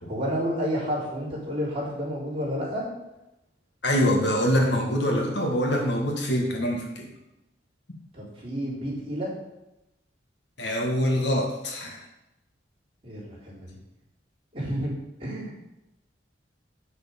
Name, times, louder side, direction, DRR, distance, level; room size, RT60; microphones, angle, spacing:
voice 1, 0.1-2.9 8.1-9.3 13.0-13.8 14.5-14.9 15.2-15.6, equal, 30° right, -8 dB, 3.8 m, -30 dB
voice 2, 3.8-7.1 10.6-12.0, equal, 65° left, 0 dB, 1.8 m, -24 dB
8.2 x 6.6 x 5.3 m, 0.93 s
head